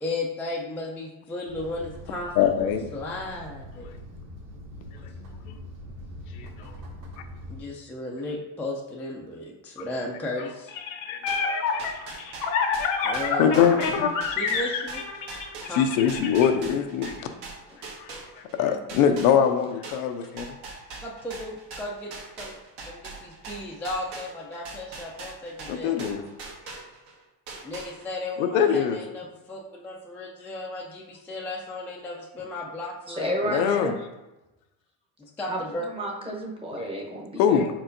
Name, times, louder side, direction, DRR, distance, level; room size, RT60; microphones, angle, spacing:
voice 1, 0.0-3.9 7.5-10.7 13.0-13.7 14.2-15.0 15.7-15.8 21.0-22.1 22.4-22.5 22.8-26.0 27.6-33.6 35.2-35.9, left 2 dB, 5° left, -3 dB, 0.3 m, -35 dB
sound 1, 1.5-7.6, left 1 dB, 85° right, 1.1 m, -42 dB
voice 2, 2.4-2.8 5.5-5.6 6.4-6.5 11.1-12.2 13.4-14.1 15.8-17.3 18.0-18.1 18.5-20.4 25.7-26.2 28.4-29.0 33.5-33.9 37.4-37.6, left 8 dB, 80° left, 7 dB, 0.6 m, -23 dB
sound 2, 10.7-16.5, left 5 dB, 50° left, 0.7 m, -27 dB
sound 3, 11.3-18.6 18.9-27.1 27.5-28.3, right 3 dB, 65° right, 1.3 m, -41 dB
voice 3, 33.1-34.0 35.5-37.7, equal, 15° right, -1 dB, 0.8 m, -31 dB
4.6 x 4.2 x 2.6 m, 0.99 s
supercardioid pair, 120°, 43 cm